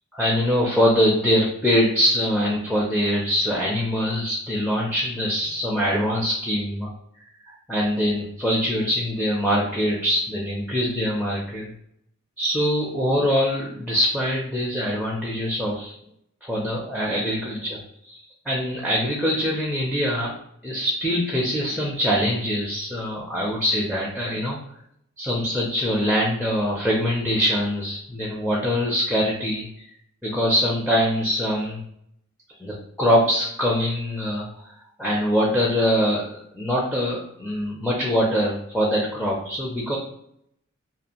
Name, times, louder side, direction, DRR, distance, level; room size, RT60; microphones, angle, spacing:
voice 1, 0.1-6.9 7.4-11.7 12.4-15.9 16.4-18.2 18.5-20.3 20.6-24.6 25.2-29.7 30.2-31.8 32.6-34.7 35.0-40.0, equal, ahead, -5 dB, 0.4 m, -23 dB
2.5 x 2.4 x 2.8 m, 0.73 s
head